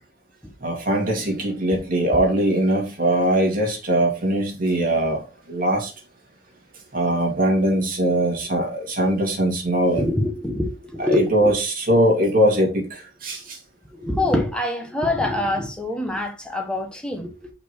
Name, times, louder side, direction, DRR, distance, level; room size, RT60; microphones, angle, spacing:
voice 1, 0.6-5.2 5.5-5.9 6.9-10.1 11.1-13.4, right 1 dB, 45° right, 2.4 m, -21 dB
voice 2, 10.0-11.2 14.0-17.5, left 1 dB, 5° left, 1.4 m, -25 dB
5.6 x 4.5 x 4.7 m
head